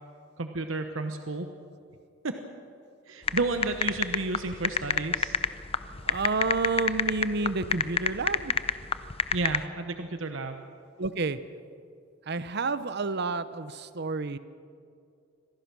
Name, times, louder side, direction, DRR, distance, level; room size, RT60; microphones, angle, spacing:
voice 1, 0.4-1.5 2.2-2.4 3.1-5.4 9.3-10.6, right 3 dB, 75° right, 6 dB, 1.1 m, -32 dB
sound 1, 3.3-9.6, left 6 dB, 30° left, 0.6 m, -27 dB
voice 2, 6.0-8.6 11.0-11.4 12.3-14.4, right 3 dB, 55° right, 13 dB, 0.8 m, -30 dB
25.5 x 17.5 x 6.2 m, 2.4 s
head